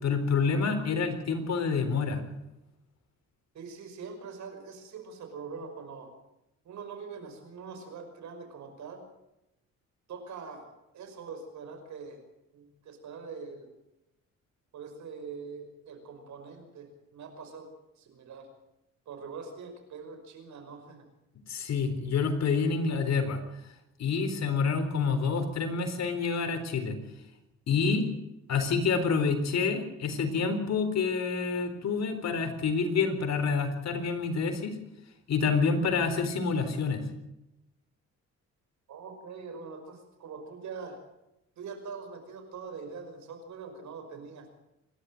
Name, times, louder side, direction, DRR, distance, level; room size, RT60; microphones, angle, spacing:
voice 1, 0.0-2.2 21.5-23.4 24.0-27.0 27.7-28.1 28.5-34.8 35.3-37.0, left 5 dB, 60° left, 7 dB, 4.1 m, -28 dB
voice 2, 3.5-6.1 6.6-9.0 10.1-12.2 12.5-13.7 14.7-17.7 18.0-18.5 19.1-21.0 38.9-41.0 41.6-44.6, right 5 dB, 70° right, 6 dB, 5.7 m, -43 dB
27.5 x 12.5 x 7.9 m, 0.90 s
cardioid pair, 90°, 30 cm